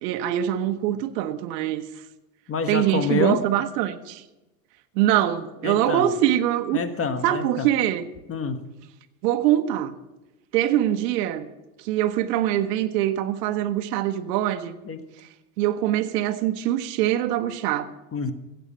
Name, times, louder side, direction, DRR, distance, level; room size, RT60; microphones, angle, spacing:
voice 1, 0.0-1.8 2.7-4.2 4.9-6.8 7.2-8.1 9.2-10.0 10.5-11.5 11.8-14.8 15.6-17.9, right 12 dB, 75° right, 8 dB, 1.2 m, -23 dB
voice 2, 2.5-3.4 5.6-6.1 6.7-7.7 8.3-8.7 14.8-15.0 18.1-18.3, left 5 dB, 25° left, 9 dB, 1.4 m, -27 dB
16.0 x 8.2 x 7.4 m, 1.0 s
hypercardioid pair, 95°, 49 cm